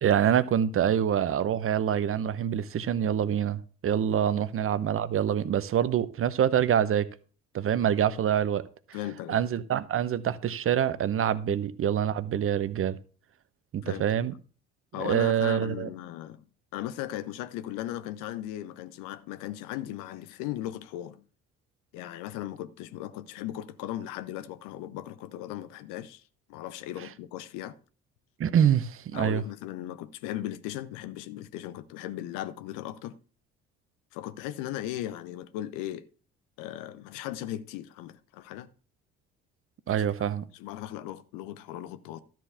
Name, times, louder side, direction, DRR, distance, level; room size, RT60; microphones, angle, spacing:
voice 1, 0.0-7.1 7.5-8.6 9.3-13.0 13.7-14.3 15.0-15.9 28.4-29.4 39.9-40.4, right 9 dB, 35° right, 0.9 m, -26 dB
voice 2, 8.9-9.4 11.5-11.6 13.8-14.1 14.9-16.4 16.7-21.2 21.9-26.2 26.5-27.8 29.1-33.2 34.1-36.1 36.6-38.7 39.9-40.3 40.5-42.2, left 13 dB, 60° left, 0.8 m, -37 dB
13.0 x 4.6 x 7.0 m
figure-of-eight pair, 55°, 35 cm